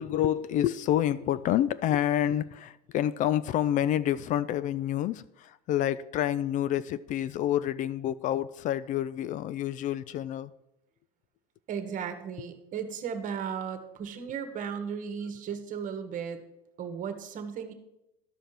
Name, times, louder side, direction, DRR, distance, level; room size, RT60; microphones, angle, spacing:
voice 1, 0.0-10.5, left 11 dB, 40° left, 0.4 m, -28 dB
voice 2, 11.7-16.4 16.8-17.7, right 7 dB, 45° right, 1.4 m, -35 dB
12.5 x 5.2 x 5.8 m
supercardioid pair, 100°, 19 cm